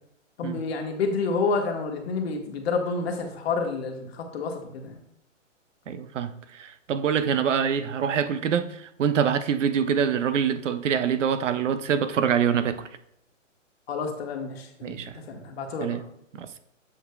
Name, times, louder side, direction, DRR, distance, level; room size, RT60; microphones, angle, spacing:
voice 1, 0.4-5.0 13.9-15.0 15.3-16.0, left 4 dB, 50° left, 1.5 m, -29 dB
voice 2, 5.9-12.8 14.8-15.2 15.8-16.0 16.4-16.5, right 7 dB, 70° right, 0.7 m, -25 dB
8.6 x 6.1 x 2.3 m
hypercardioid pair, 145°, 39 cm